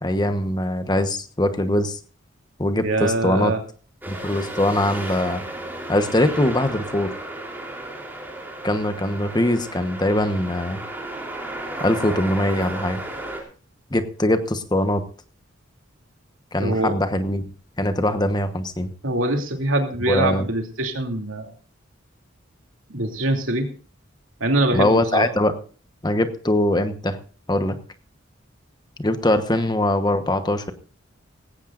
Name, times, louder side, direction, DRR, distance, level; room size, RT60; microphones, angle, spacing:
voice 1, 0.0-2.0 2.6-3.5 4.1-5.4 5.9-7.1 8.6-10.8 11.8-13.0 13.9-15.0 16.5-17.5 17.8-18.9 20.1-20.5 24.7-25.6 26.0-27.2 27.5-27.8 29.0-30.7, left 1 dB, 20° left, 9 dB, 1.1 m, -22 dB
voice 2, 2.8-3.6 16.6-16.9 19.0-21.5 22.9-23.7 24.4-25.2, right 2 dB, 90° right, 3 dB, 2.8 m, -23 dB
sound 1, 4.0-13.4, right 1 dB, 10° right, 3.5 m, -34 dB
18.0 x 16.5 x 2.5 m, 0.39 s
head